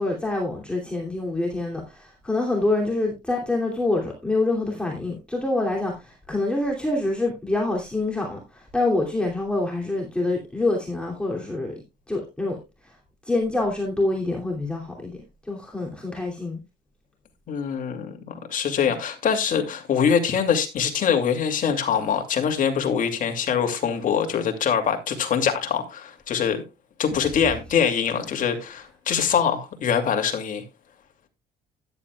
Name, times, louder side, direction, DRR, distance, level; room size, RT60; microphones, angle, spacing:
voice 1, 0.0-11.7 12.1-12.6 12.8-12.9 13.2-15.2 15.5-16.6, left 2 dB, 5° left, 2.7 m, -26 dB
voice 2, 17.5-26.6 27.0-30.6, left 7 dB, 50° left, 2.5 m, -24 dB
13.5 x 11.0 x 2.3 m
cardioid pair, 110°, 17 cm